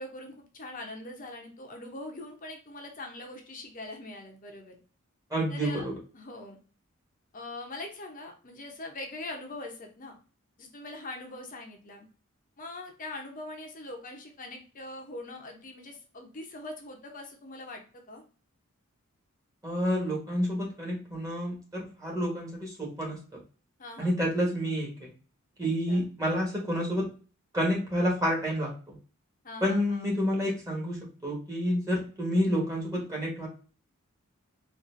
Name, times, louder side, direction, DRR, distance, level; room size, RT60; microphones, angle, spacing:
voice 1, 0.0-4.8 5.5-5.9 6.1-6.6 7.3-10.2 10.6-12.1 12.6-18.2 23.8-24.1 25.6-26.1 29.4-30.1, left 2 dB, 40° left, 2 dB, 0.8 m, -42 dB
voice 2, 5.3-6.0 19.6-23.2 24.0-25.1 25.6-27.1 27.5-28.9 29.6-33.5, equal, 15° right, -3 dB, 1.3 m, -29 dB
3.9 x 2.6 x 2.6 m, 0.37 s
head